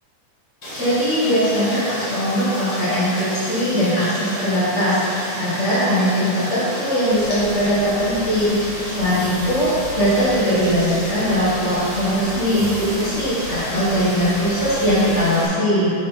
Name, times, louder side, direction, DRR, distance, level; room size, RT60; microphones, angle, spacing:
Rain, 0.6-15.5, left 1 dB, 30° left, 1.6 m, -31 dB
voice 1, 0.7-9.7 9.9-15.9, equal, 50° left, -10 dB, 0.8 m, -20 dB
sound 1, 7.1-15.2, right 2 dB, 80° right, 1.9 m, -36 dB
6.9 x 6.2 x 3.8 m, 2.6 s
omnidirectional pair, 3.7 m